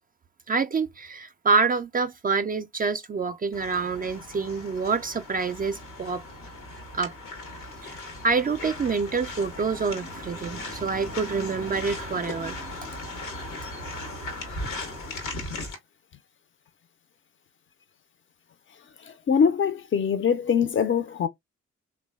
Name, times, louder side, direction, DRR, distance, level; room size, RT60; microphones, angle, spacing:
voice 1, 0.5-6.2 6.9-7.1 7.8-13.0, right 5 dB, 30° right, 0.4 m, -27 dB
sound 1, 3.5-15.8, left 2 dB, 85° left, 0.9 m, -38 dB
voice 2, 19.0-21.3, left 7 dB, 40° left, 0.5 m, -23 dB
3.1 x 2.1 x 2.2 m
hypercardioid pair, 40°, 32 cm